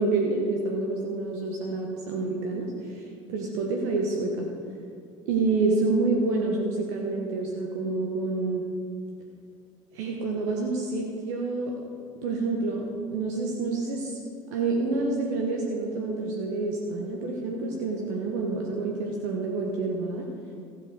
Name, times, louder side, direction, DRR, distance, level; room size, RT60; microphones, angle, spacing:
voice 1, 0.0-4.5 5.3-8.6 9.9-11.7 12.2-12.9 13.1-14.2 14.5-20.3, right 3 dB, 60° right, 1 dB, 1.3 m, -28 dB
15.0 x 7.7 x 4.9 m, 2.4 s
figure-of-eight pair, 60°, 17 cm